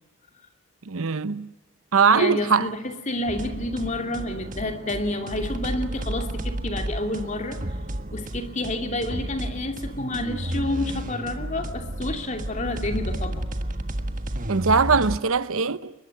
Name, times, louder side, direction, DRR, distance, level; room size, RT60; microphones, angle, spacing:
voice 1, 0.9-1.5 1.9-2.7 14.5-15.9, right 5 dB, 75° right, 0.8 m, -21 dB
voice 2, 2.1-7.6 8.1-13.5, left 1 dB, 35° left, 2.7 m, -29 dB
sound 1, 3.3-15.2, right 1 dB, 35° right, 1.5 m, -32 dB
22.5 x 21.5 x 9.9 m
head